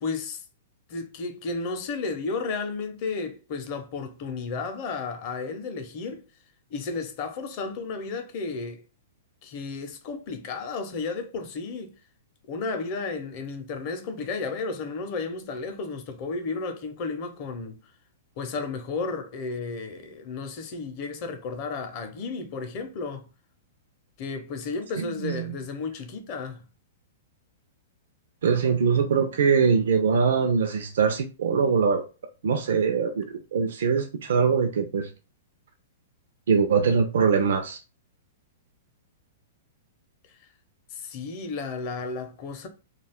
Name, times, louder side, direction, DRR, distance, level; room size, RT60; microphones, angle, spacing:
voice 1, 0.0-0.4 0.9-6.2 6.7-8.8 9.4-12.0 12.5-17.8 18.4-23.3 24.2-26.6 40.9-42.7, left 4 dB, 40° left, 0.6 m, -33 dB
voice 2, 28.4-32.0 32.4-35.1 36.5-37.8, right 6 dB, 75° right, 0.5 m, -22 dB
2.4 x 2.3 x 3.4 m
hypercardioid pair, 155°, 0 cm